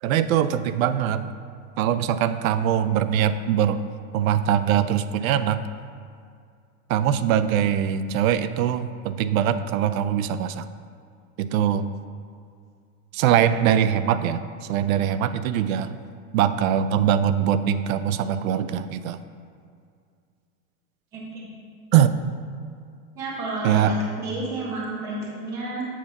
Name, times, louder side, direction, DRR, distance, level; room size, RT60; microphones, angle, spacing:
voice 1, 0.0-1.3 1.8-3.8 4.1-5.6 6.9-10.7 11.4-11.9 13.1-16.0 16.3-19.2 21.9-22.1 23.6-23.9, right 9 dB, 85° right, 12 dB, 0.5 m, -22 dB
voice 2, 21.1-21.5 22.0-22.1 23.1-25.8, right 2 dB, 10° right, -3 dB, 0.3 m, -31 dB
7.5 x 4.0 x 5.7 m, 2.2 s
supercardioid pair, 170°, 40 cm